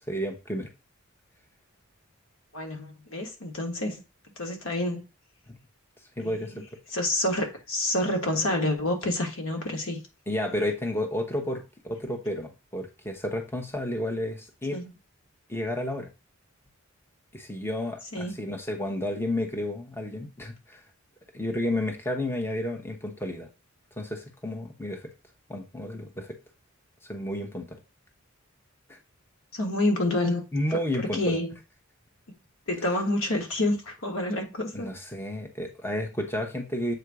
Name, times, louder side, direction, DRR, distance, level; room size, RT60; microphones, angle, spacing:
voice 1, 0.1-0.7 5.5-5.6 6.2-6.6 10.3-14.8 15.5-16.1 17.3-20.8 21.3-23.5 24.0-25.1 25.5-26.4 27.0-27.8 28.9-29.0 30.5-31.4 34.7-36.9, left 1 dB, 10° left, 0.9 m, -31 dB
voice 2, 2.5-4.0 4.4-5.0 6.2-6.6 6.9-10.0 14.7-14.9 18.1-18.4 29.5-30.4 30.7-31.6 32.7-34.9, left 1 dB, 80° left, 1.5 m, -28 dB
7.8 x 2.7 x 4.7 m
head